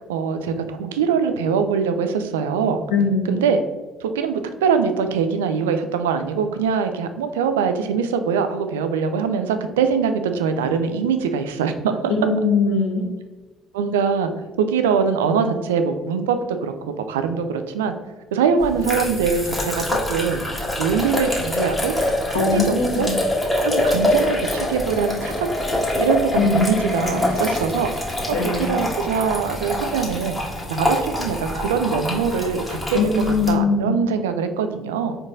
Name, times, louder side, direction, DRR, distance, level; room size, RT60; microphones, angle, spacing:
voice 1, 0.1-2.8 3.3-3.6 4.0-12.0 13.7-14.3 14.6-17.9 18.3-22.0 22.3-23.1 23.6-27.9 28.4-30.4 30.7-35.2, right 6 dB, 80° right, 8 dB, 0.3 m, -23 dB
voice 2, 2.9-3.4 12.1-13.0 22.3-23.1 26.4-27.2 28.3-28.6 32.9-34.0, left 4 dB, 75° left, -2 dB, 1.0 m, -21 dB
sound 1, 18.6-33.5, left 1 dB, 20° left, 1.4 m, -25 dB
4.4 x 3.8 x 2.5 m, 1.3 s
hypercardioid pair, 50°, 0 cm